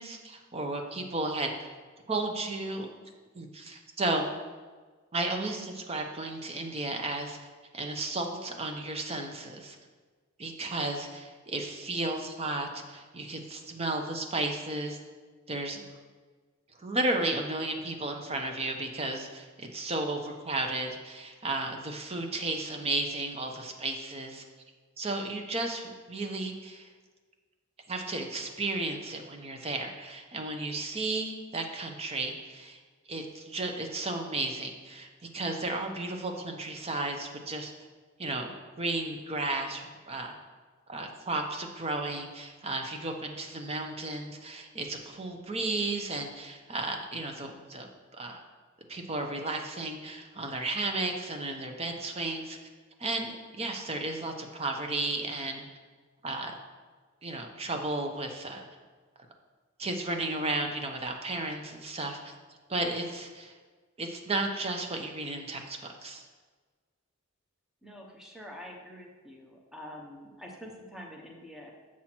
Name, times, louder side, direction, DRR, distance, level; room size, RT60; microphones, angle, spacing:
voice 1, 0.0-1.7 2.1-2.9 3.3-4.3 5.1-7.4 7.7-9.8 10.4-15.0 15.5-15.8 16.8-24.4 25.0-26.9 27.9-32.8 33.1-35.1 35.3-37.7 38.2-38.5 38.8-40.3 40.9-48.4 48.9-52.6 53.0-55.6 56.2-56.5 57.2-58.7 59.8-62.3 62.7-63.5 64.0-66.3, right 2 dB, 30° right, 3 dB, 0.8 m, -33 dB
voice 2, 67.8-71.7, equal, 5° right, -1 dB, 0.9 m, -46 dB
7.5 x 5.7 x 4.5 m, 1.4 s
head